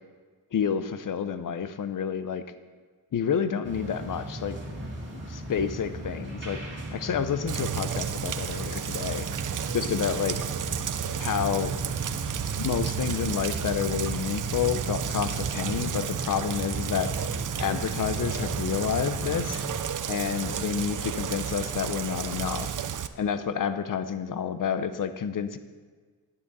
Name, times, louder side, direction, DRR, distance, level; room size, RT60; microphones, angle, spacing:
voice 1, 0.5-2.4 3.1-4.6 5.1-6.6 6.9-9.3 9.7-10.4 11.2-11.7 12.6-17.1 17.6-19.6 20.1-22.8 23.2-25.6, left 7 dB, 50° left, 11 dB, 0.7 m, -29 dB
sound 1, 3.6-19.7, right 1 dB, 30° right, 2.5 m, -37 dB
Rain, 7.5-23.1, right 9 dB, 50° right, 0.6 m, -32 dB
11.5 x 9.9 x 4.1 m, 1.5 s
cardioid pair, 95°, 41 cm